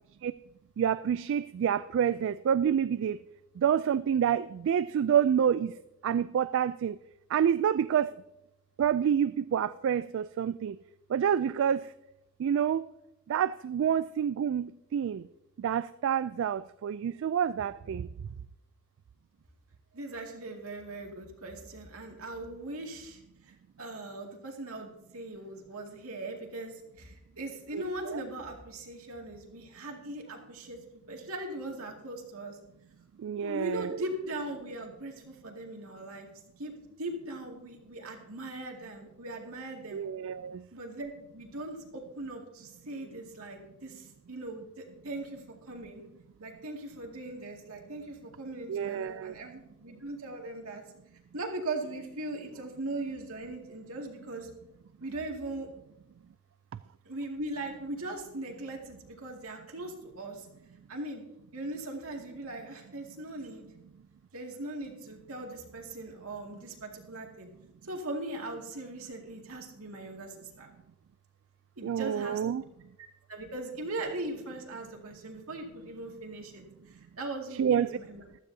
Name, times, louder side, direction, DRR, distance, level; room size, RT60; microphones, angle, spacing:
voice 1, 0.8-3.2 3.6-5.7 6.0-7.0 7.3-8.1 8.8-10.8 11.1-11.8 12.4-12.8 13.3-15.2 15.6-18.1 27.7-27.8 28.1-28.2 33.2-33.9 39.9-40.6 48.7-49.3 71.8-72.6 77.6-78.0, right 8 dB, 60° right, 0.3 m, -28 dB
voice 2, 19.9-23.2 23.5-30.8 31.1-32.6 33.4-36.3 36.6-36.7 37.0-40.0 40.7-46.0 46.4-50.8 51.3-54.5 55.0-55.7 57.1-60.5 60.9-61.2 61.5-63.7 64.3-67.5 67.9-70.7 71.8-72.4 73.3-78.2, right 2 dB, 80° right, 2.2 m, -39 dB
15.0 x 12.5 x 2.7 m
head